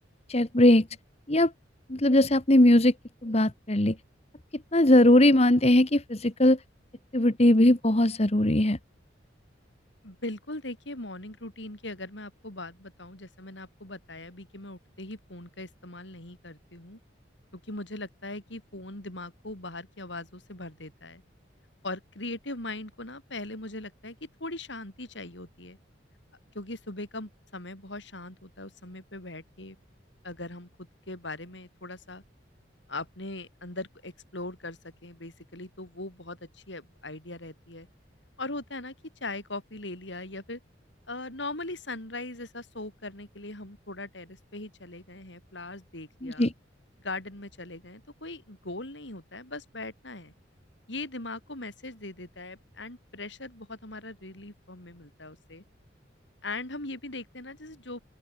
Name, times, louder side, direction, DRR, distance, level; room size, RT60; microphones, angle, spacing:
voice 1, 0.3-0.9 1.3-1.5 1.9-2.9 3.2-4.0 4.7-6.6 7.1-8.8 46.2-46.5, left 1 dB, 35° left, 1.4 m, -20 dB
voice 2, 10.0-17.0 17.5-21.2 21.8-25.8 26.5-29.8 30.2-32.2 32.9-37.9 38.4-38.9 39.2-40.6 41.1-46.5 47.0-50.3 50.9-55.6 56.4-58.0, left 2 dB, 70° left, 6.0 m, -40 dB
open air
head